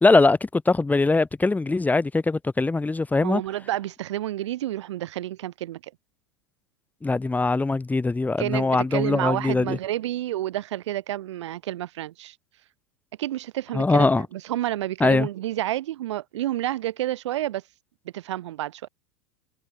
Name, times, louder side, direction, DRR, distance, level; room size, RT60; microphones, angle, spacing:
voice 1, 0.0-3.4 7.0-9.8 13.7-14.2 15.0-15.3, left 3 dB, 10° left, 2.1 m, -21 dB
voice 2, 3.2-5.9 8.4-12.4 13.2-17.6 18.1-18.9, right 14 dB, 75° right, 1.5 m, -30 dB
hypercardioid pair, 100°, 15 cm